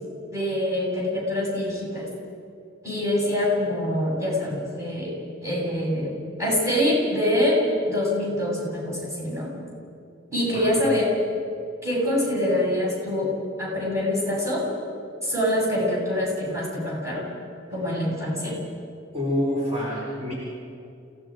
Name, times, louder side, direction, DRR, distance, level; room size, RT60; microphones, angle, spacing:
voice 1, 0.3-2.1 2.8-6.1 6.4-9.5 10.3-11.1 11.8-14.7 15.2-17.3 17.7-18.6, left 1 dB, 15° right, -5 dB, 7.0 m, -25 dB
voice 2, 19.1-20.3, left 1 dB, 35° right, -6 dB, 4.4 m, -27 dB
29.0 x 17.5 x 5.1 m, 2.6 s
head